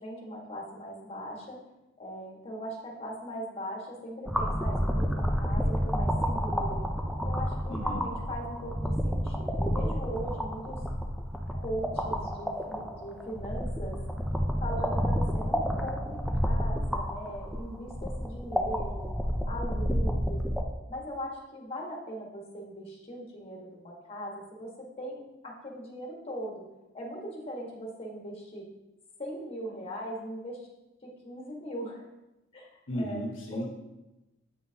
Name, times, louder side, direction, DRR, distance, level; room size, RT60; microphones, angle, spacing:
voice 1, 0.0-1.6 2.0-6.8 7.2-10.8 11.5-14.0 14.6-19.2 19.4-20.4 20.9-26.6 26.9-28.7 29.2-30.6 31.0-32.1 32.5-33.2 33.5-33.7, equal, 30° left, -2 dB, 1.5 m, -40 dB
sound 1, 4.3-20.6, equal, ahead, 0.5 m, -30 dB
voice 2, 7.7-8.1 32.9-33.7, equal, 75° left, -1 dB, 1.2 m, -34 dB
8.3 x 5.7 x 2.9 m, 0.99 s
head